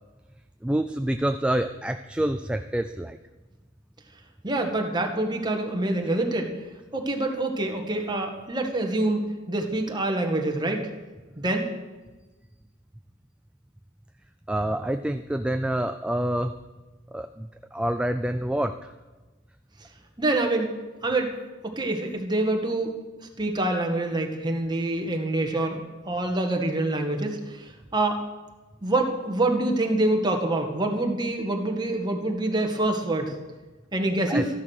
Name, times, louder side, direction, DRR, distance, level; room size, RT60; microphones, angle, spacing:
voice 1, 0.6-3.2 14.5-16.5 17.1-18.8 34.3-34.5, right 1 dB, 5° right, 8 dB, 0.3 m, -27 dB
voice 2, 4.4-6.5 6.9-10.9 11.4-11.6 20.2-20.7 21.0-21.3 21.6-22.9 23.4-25.8 26.1-28.2 28.8-33.3 33.9-34.5, right 2 dB, 20° right, 2 dB, 1.7 m, -26 dB
13.5 x 11.0 x 6.5 m, 1.2 s
head